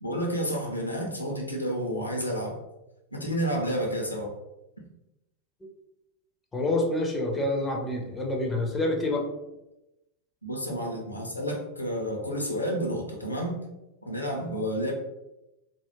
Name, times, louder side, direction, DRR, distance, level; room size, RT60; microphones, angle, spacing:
voice 1, 0.0-2.6 3.1-4.3 10.4-13.6 14.0-14.9, equal, 85° left, 0 dB, 0.5 m, -30 dB
voice 2, 6.5-9.2, left 2 dB, 15° left, 1 dB, 0.5 m, -27 dB
2.3 x 2.0 x 3.0 m, 0.94 s
figure-of-eight pair, 90°, 0 cm